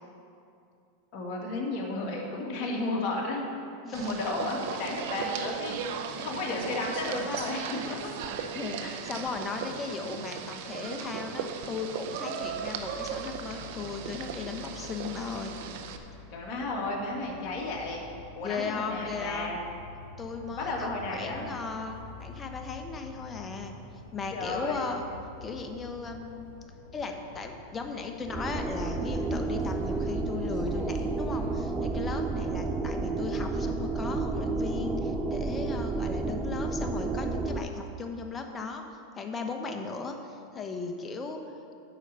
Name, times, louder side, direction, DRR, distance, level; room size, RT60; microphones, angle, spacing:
voice 1, 1.1-3.4 3.9-5.8 6.2-8.2 8.8-8.9 16.3-18.0 18.4-19.6 20.5-21.5 24.3-24.8, left 2 dB, 50° left, -2 dB, 2.2 m, -33 dB
voice 2, 3.8-4.2 8.5-15.5 18.4-19.6 20.2-23.7 24.1-25.0 25.4-26.5 26.9-38.8 39.2-41.4, left 4 dB, 25° left, 4 dB, 1.0 m, -37 dB
sound 1, 3.9-16.0, right 7 dB, 65° right, 0.7 m, -37 dB
sound 2, 12.4-31.6, left 5 dB, 75° left, 1.9 m, -48 dB
sound 3, 28.2-37.6, right 3 dB, 20° right, 0.6 m, -31 dB
10.0 x 4.8 x 6.8 m, 2.5 s
hypercardioid pair, 115°, 0 cm